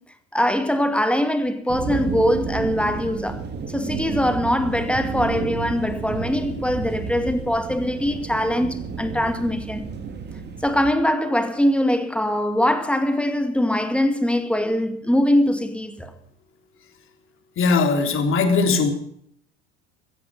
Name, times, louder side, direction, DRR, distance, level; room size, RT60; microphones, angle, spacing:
voice 1, 0.3-3.4 3.7-9.8 10.6-16.1, left 1 dB, 5° left, 2.1 m, -22 dB
sound 1, 1.7-10.9, right 5 dB, 30° right, 2.7 m, -31 dB
voice 2, 17.6-18.9, left 4 dB, 40° left, 3.5 m, -19 dB
15.5 x 15.0 x 5.4 m
figure-of-eight pair, 70°, 33 cm